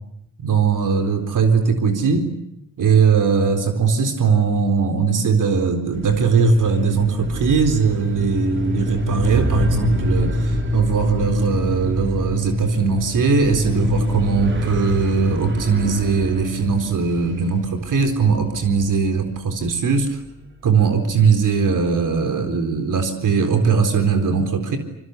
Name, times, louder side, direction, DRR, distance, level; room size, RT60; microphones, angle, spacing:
voice 1, 0.4-2.3 2.8-20.2 20.6-24.8, right 5 dB, 75° right, 7 dB, 4.1 m, -19 dB
sound 1, 5.9-20.0, equal, 40° right, 3.9 m, -26 dB
28.0 x 25.0 x 8.2 m, 0.81 s
wide cardioid pair, 175°, 32 cm